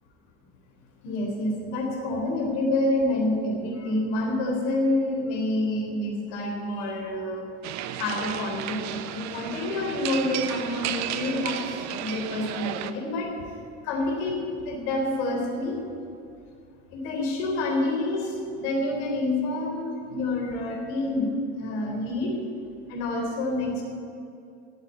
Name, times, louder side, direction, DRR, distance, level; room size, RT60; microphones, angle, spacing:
voice 1, 1.0-7.4 8.0-13.3 13.8-15.8 16.9-22.4 22.9-23.8, left 2 dB, 65° left, 0 dB, 3.7 m, -28 dB
sound 1, 7.6-12.9, right 10 dB, 50° right, 1.0 m, -33 dB
13.5 x 8.3 x 8.6 m, 2.5 s
hypercardioid pair, 75°, 35 cm